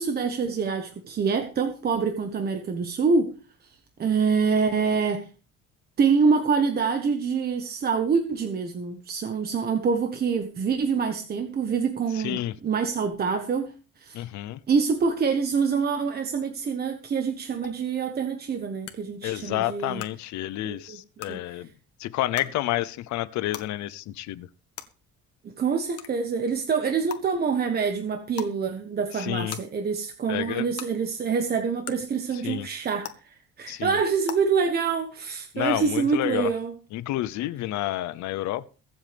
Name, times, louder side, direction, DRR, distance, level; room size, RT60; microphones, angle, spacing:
voice 1, 0.0-3.3 4.0-5.3 6.0-13.7 14.0-14.2 14.7-20.0 20.6-21.0 21.3-21.4 25.4-36.7, right 5 dB, 35° right, 6 dB, 1.3 m, -26 dB
voice 2, 12.1-12.6 14.1-14.6 19.2-21.7 22.0-24.5 29.1-29.6 30.3-30.7 32.3-32.7 33.7-34.0 35.5-36.5 36.9-38.7, left 15 dB, 75° left, 16 dB, 0.7 m, -30 dB
sound 1, 17.6-17.7 18.8-18.9 20.0-20.1 21.2-21.3 22.3-22.5 23.5-23.6 24.7-24.8 26.0-26.1 27.1-27.2 28.3-28.5 29.5-29.6 30.8-30.9 31.8-31.9 33.0-33.1 34.2-34.3, left 11 dB, 55° left, 1.6 m, -35 dB
23.0 x 8.0 x 3.5 m, 0.36 s
cardioid pair, 150°, 29 cm